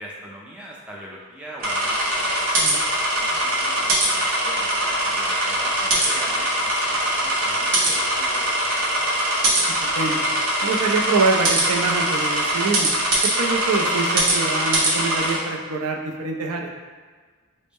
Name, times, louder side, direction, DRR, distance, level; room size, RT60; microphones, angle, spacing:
voice 1, 0.0-2.3 3.1-9.1, equal, 5° right, -4 dB, 0.3 m, -41 dB
sound 1, 1.6-15.4, right 1 dB, 65° right, 0.8 m, -22 dB
voice 2, 10.6-12.9 13.4-16.7, right 4 dB, 85° right, 2 dB, 0.4 m, -25 dB
4.0 x 2.1 x 3.5 m, 1.5 s
head